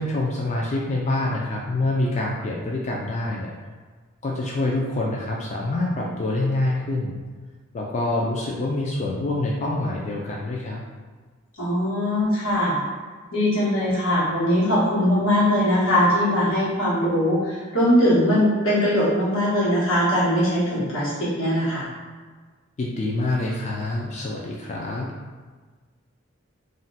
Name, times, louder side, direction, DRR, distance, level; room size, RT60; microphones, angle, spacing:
voice 1, 0.0-3.5 4.2-7.2 7.7-10.8 22.8-25.1, left 2 dB, 35° left, -3 dB, 0.3 m, -26 dB
voice 2, 11.6-12.8 13.3-21.8, equal, 90° left, -8 dB, 1.3 m, -21 dB
2.5 x 2.1 x 4.0 m, 1.4 s
head